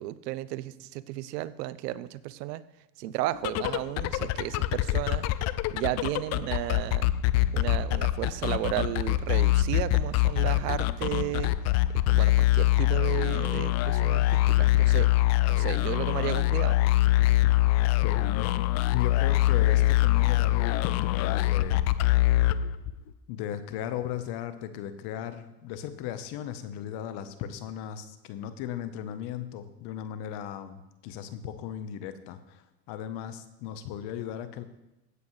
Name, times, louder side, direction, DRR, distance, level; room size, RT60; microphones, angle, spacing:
voice 1, 0.0-2.6 3.0-5.3 5.7-7.1 7.5-11.5 12.1-15.1 15.5-16.8, right 15 dB, 80° right, 17 dB, 0.7 m, -33 dB
sound 1, 3.3-23.1, left 15 dB, 35° left, 0.4 m, -24 dB
voice 2, 18.0-18.6 18.9-21.9 23.3-34.6, left 10 dB, 55° left, 11 dB, 1.0 m, -36 dB
16.0 x 8.2 x 3.2 m, 0.95 s
supercardioid pair, 105°, 49 cm